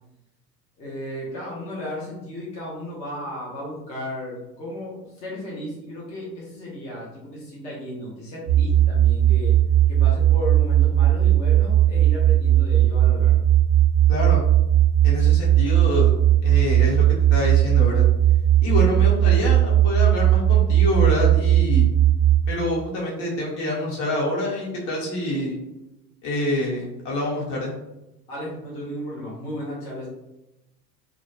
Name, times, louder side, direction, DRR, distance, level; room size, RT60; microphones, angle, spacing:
voice 1, 0.8-9.6 9.9-13.4 18.7-18.9 28.3-30.1, left 1 dB, 15° left, -5 dB, 0.4 m, -34 dB
sound 1, 8.5-22.5, right 11 dB, 25° right, 0.7 m, -17 dB
voice 2, 14.1-14.4 15.0-16.1 16.4-17.0 17.3-18.0 18.6-21.9 22.5-25.6 26.2-27.7, left 1 dB, 50° left, -4 dB, 1.1 m, -26 dB
2.3 x 2.2 x 3.1 m, 0.95 s
figure-of-eight pair, 85°, 50 cm